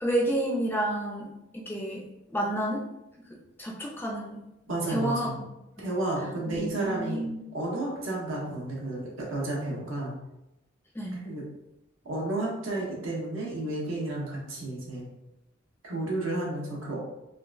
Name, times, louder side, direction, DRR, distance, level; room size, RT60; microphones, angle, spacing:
voice 1, 0.0-2.9 3.3-4.4 4.9-5.3 6.5-7.4 10.9-11.2, right 1 dB, 10° left, -1 dB, 0.3 m, -30 dB
voice 2, 4.7-5.4 5.8-7.2 7.5-10.1 11.2-11.4 12.0-15.0 15.8-17.0, right 2 dB, 75° right, -4 dB, 1.0 m, -32 dB
3.6 x 2.3 x 2.5 m, 0.92 s
head